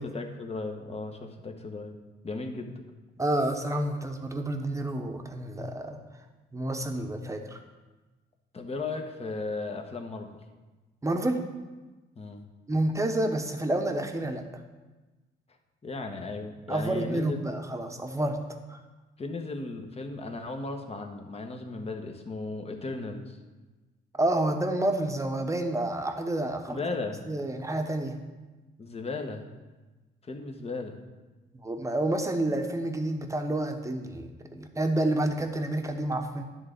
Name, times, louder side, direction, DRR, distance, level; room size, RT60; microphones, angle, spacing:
voice 1, 0.0-2.7 8.5-10.4 12.2-12.4 15.8-17.4 19.2-23.4 26.7-27.2 28.8-29.4 30.2-31.0, left 3 dB, 30° left, 4 dB, 1.1 m, -36 dB
voice 2, 3.2-6.0 6.5-7.6 11.0-11.4 12.7-14.4 16.7-18.4 18.7-18.8 24.2-27.0 27.3-28.2 31.5-36.4, right 1 dB, 15° right, 5 dB, 1.0 m, -29 dB
10.5 x 3.8 x 6.6 m, 1.2 s
cardioid pair, 90°, 20 cm